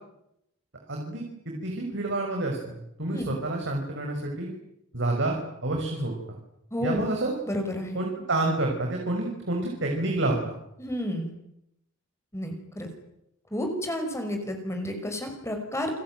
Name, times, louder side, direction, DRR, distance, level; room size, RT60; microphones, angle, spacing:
voice 1, 0.9-4.5 4.9-6.4 6.8-7.3 7.9-10.5, right 2 dB, 60° right, 1 dB, 6.1 m, -29 dB
voice 2, 6.7-7.1 7.5-8.0 10.8-11.3 12.3-12.9 13.5-15.9, left 1 dB, 15° left, 4 dB, 5.6 m, -31 dB
29.5 x 20.5 x 9.3 m, 0.81 s
head